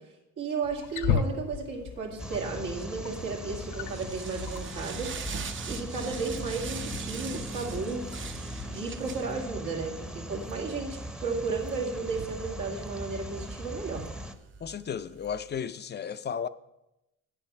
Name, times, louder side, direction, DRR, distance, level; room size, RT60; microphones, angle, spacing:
voice 1, 0.4-5.1 5.7-8.0 8.7-14.0, right 4 dB, 85° right, 2.2 m, -34 dB
Wild animals, 0.6-9.1, left 7 dB, 85° left, 0.6 m, -37 dB
sound 1, 2.2-14.3, right 1 dB, 5° right, 0.7 m, -40 dB
sound 2, 3.2-15.6, right 6 dB, 40° right, 0.6 m, -43 dB
voice 2, 14.6-16.5, left 7 dB, 35° left, 0.4 m, -34 dB
9.1 x 7.2 x 5.7 m
cardioid pair, 90°, 30 cm